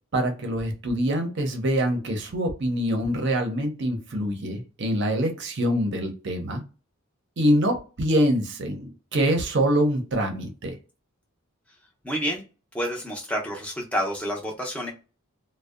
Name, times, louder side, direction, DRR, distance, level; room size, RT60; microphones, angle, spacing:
voice 1, 0.1-6.6 7.4-10.7, equal, 50° right, 0.6 m, -25 dB
voice 2, 12.0-12.4 12.7-14.9, equal, 5° left, 0.5 m, -29 dB
2.6 x 2.0 x 2.3 m
head